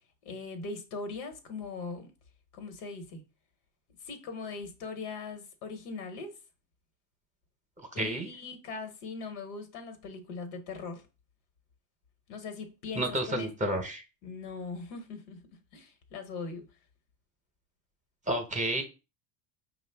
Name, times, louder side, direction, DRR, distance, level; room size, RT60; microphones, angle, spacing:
voice 1, 0.2-2.1 2.5-3.2 4.0-6.3 7.9-11.0 12.3-13.5 14.2-15.4 15.7-16.6, left 4 dB, 80° left, 1.2 m, -40 dB
voice 2, 8.0-8.3 12.9-14.0 18.3-18.8, right 1 dB, 15° right, 0.8 m, -30 dB
5.1 x 2.3 x 3.4 m
supercardioid pair, 110°, 44 cm